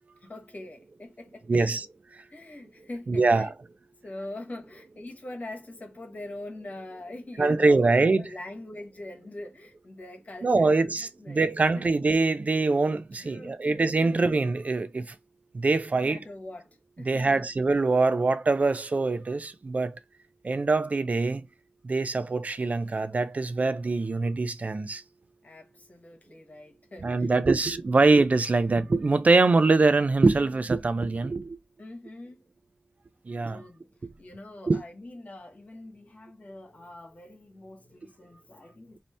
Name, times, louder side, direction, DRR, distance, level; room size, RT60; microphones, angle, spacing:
voice 1, 0.2-1.8 2.3-3.5 4.0-11.5 11.7-11.9 13.1-14.3 15.9-16.7 17.0-17.5 25.4-27.6 31.8-32.4 33.5-33.9 34.2-39.0, left 1 dB, 55° left, 1.2 m, -43 dB
voice 2, 1.5-1.9 3.1-3.5 7.4-8.2 10.4-15.1 15.5-16.2 17.1-20.0 20.4-21.5 21.8-25.0 27.0-31.6 33.3-33.6 34.0-34.1 34.7-34.8, right 3 dB, 55° right, 0.4 m, -23 dB
3.2 x 2.8 x 4.2 m
wide cardioid pair, 80°, 3 cm